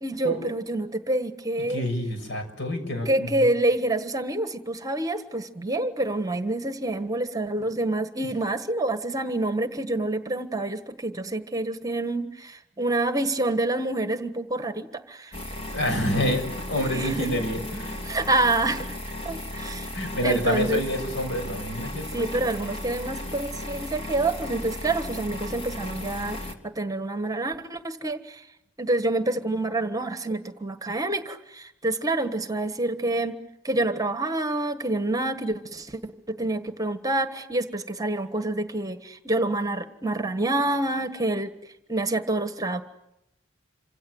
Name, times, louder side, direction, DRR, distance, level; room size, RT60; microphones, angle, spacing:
voice 1, 0.0-1.8 3.0-15.4 16.9-17.3 18.0-19.0 19.2-19.9 20.2-20.8 22.1-28.4 28.8-33.3 33.6-41.5 41.9-42.8, right 2 dB, 20° right, 9 dB, 1.5 m, -27 dB
voice 2, 1.7-3.3 15.7-18.0 19.9-22.2, equal, 60° left, 6 dB, 6.6 m, -27 dB
sound 1, 15.3-26.5, left 1 dB, 30° left, 3.3 m, -35 dB
28.0 x 26.0 x 8.1 m, 0.83 s
head